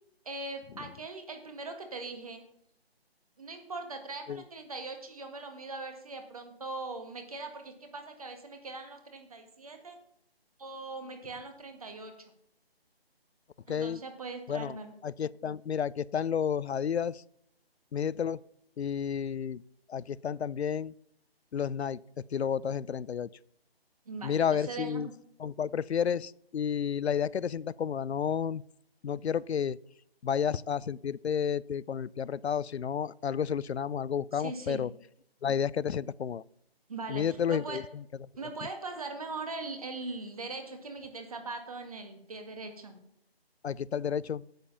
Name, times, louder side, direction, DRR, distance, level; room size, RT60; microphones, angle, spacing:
voice 1, 0.2-2.4 3.4-10.0 10.6-12.3 13.7-14.9 24.0-25.1 34.3-34.8 36.9-37.8 38.4-43.0, right 3 dB, 35° right, 6 dB, 1.6 m, -41 dB
voice 2, 13.7-14.0 14.5-14.8 15.0-17.2 17.9-18.4 18.8-19.6 19.9-20.9 21.5-22.0 22.3-23.3 24.2-25.1 25.4-28.6 29.0-29.8 30.2-34.9 35.4-36.4 37.1-37.8 43.6-44.4, left 8 dB, 90° left, 22 dB, 0.5 m, -31 dB
8.8 x 7.7 x 6.9 m, 0.74 s
figure-of-eight pair, 165°, 31 cm